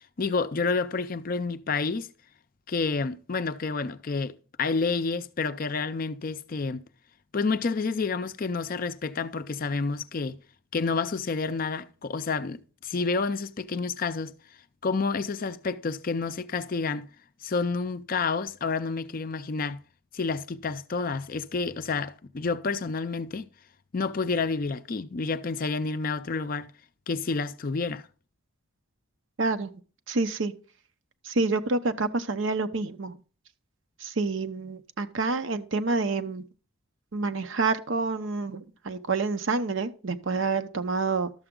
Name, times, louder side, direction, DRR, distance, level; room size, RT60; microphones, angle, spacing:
voice 1, 0.2-2.1 2.7-6.8 7.3-10.4 10.7-14.3 14.8-17.1 17.4-19.8 20.1-23.5 23.9-26.7 27.1-28.0, left 4 dB, 40° left, 0.5 m, -29 dB
voice 2, 29.4-29.7 30.1-30.5 31.2-33.1 34.0-36.4 37.1-41.3, right 3 dB, 60° right, 0.7 m, -28 dB
12.0 x 6.9 x 3.7 m
head